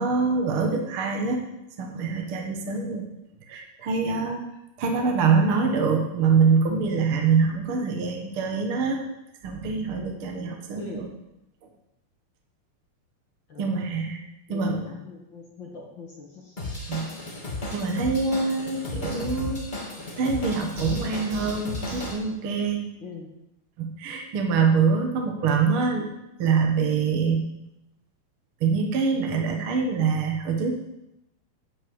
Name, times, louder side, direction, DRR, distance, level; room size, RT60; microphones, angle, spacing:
voice 1, 0.0-1.5 1.8-3.1 3.5-4.4 4.8-9.0 9.4-11.1 13.6-14.8 16.9-17.1 17.7-19.7 20.2-22.9 23.8-26.1 26.4-27.5 28.6-30.7, right 5 dB, 55° right, 2 dB, 1.5 m, -24 dB
voice 2, 10.8-11.1 13.5-13.7 14.5-16.5 23.0-23.3, left 4 dB, 40° left, -2 dB, 1.9 m, -41 dB
Drum kit / Drum, 16.6-22.2, left 2 dB, 25° left, 1.1 m, -34 dB
sound 1, 20.8-22.2, right 3 dB, 90° right, 3.9 m, -37 dB
10.0 x 6.4 x 8.0 m, 0.88 s
omnidirectional pair, 4.2 m